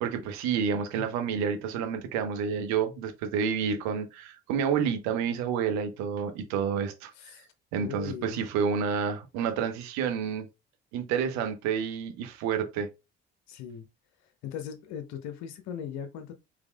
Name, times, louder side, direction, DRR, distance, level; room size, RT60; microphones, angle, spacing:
voice 1, 0.0-7.4 7.7-10.4 10.9-12.9, right 7 dB, 60° right, 0.9 m, -29 dB
voice 2, 7.2-7.5 7.8-8.4 13.5-13.9 14.4-16.3, left 8 dB, 55° left, 0.7 m, -39 dB
4.9 x 3.4 x 2.3 m
figure-of-eight pair, 50°, 32 cm